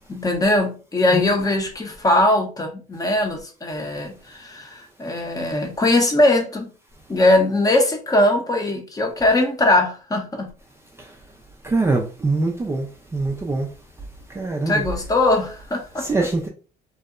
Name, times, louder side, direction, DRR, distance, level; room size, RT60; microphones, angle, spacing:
voice 1, 0.0-6.7 7.1-10.5 14.7-16.0, left 1 dB, 20° left, 0.6 m, -20 dB
voice 2, 11.6-12.9 13.1-13.7 14.4-14.7 16.0-16.5, right 3 dB, 15° right, 0.3 m, -23 dB
2.7 x 2.1 x 2.4 m
cardioid pair, 110°, 17 cm